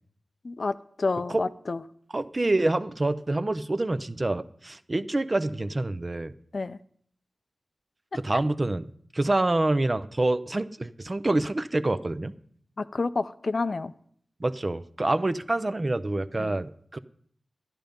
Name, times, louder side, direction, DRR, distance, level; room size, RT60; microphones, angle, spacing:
voice 1, 0.4-1.8 6.5-6.8 12.8-13.9 16.4-16.6, left 3 dB, 60° left, 13 dB, 0.5 m, -29 dB
voice 2, 2.1-6.3 8.2-12.3 14.4-17.0, right 2 dB, 40° right, 13 dB, 0.6 m, -27 dB
11.0 x 10.5 x 5.2 m, 0.62 s
cardioid pair, 45°, 0 cm